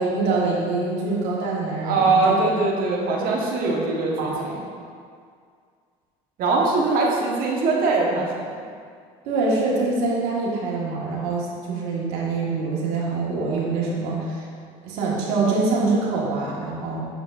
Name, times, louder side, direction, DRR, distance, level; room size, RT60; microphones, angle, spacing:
voice 1, 0.0-2.4 4.2-4.5 9.2-14.4 14.8-17.0, right 3 dB, 75° right, -4 dB, 1.7 m, -24 dB
voice 2, 1.8-4.6 6.4-8.6, right 3 dB, 60° right, -2 dB, 1.3 m, -22 dB
7.2 x 6.9 x 2.6 m, 2.1 s
supercardioid pair, 85°, 17 cm